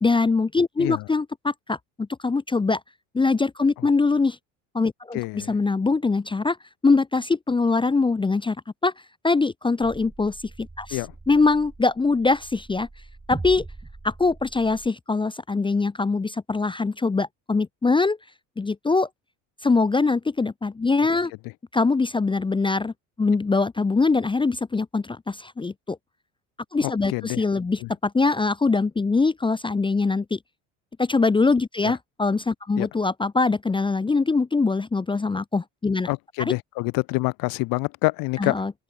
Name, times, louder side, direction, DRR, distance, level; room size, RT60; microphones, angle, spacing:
voice 1, 0.0-2.8 3.1-4.4 4.7-6.6 6.8-8.6 8.8-8.9 9.2-11.0 11.3-12.9 13.3-13.6 14.0-18.2 18.6-19.1 19.6-21.3 21.7-26.0 26.7-30.4 31.0-36.1 38.4-38.7, left 3 dB, 15° left, 0.7 m, -23 dB
voice 2, 5.1-5.5 10.9-11.1 26.8-27.4 27.8-27.9 31.8-31.9 32.8-32.9 36.1-38.6, left 24 dB, 65° left, 0.8 m, -27 dB
sound 1, 9.8-14.9, right 3 dB, 10° right, 1.9 m, -41 dB
open air
supercardioid pair, 90°, 37 cm